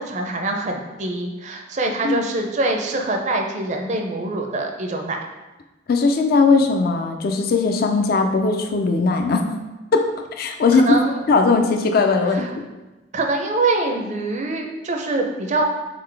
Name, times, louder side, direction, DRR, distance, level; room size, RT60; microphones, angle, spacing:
voice 1, 0.0-5.2 10.7-11.2 12.3-12.6 13.1-15.6, right 2 dB, 40° right, 2 dB, 0.5 m, -24 dB
voice 2, 5.9-9.4 9.9-10.1 10.4-11.0 11.3-12.5, left 4 dB, 50° left, 4 dB, 0.4 m, -18 dB
3.9 x 3.8 x 3.3 m, 1.1 s
head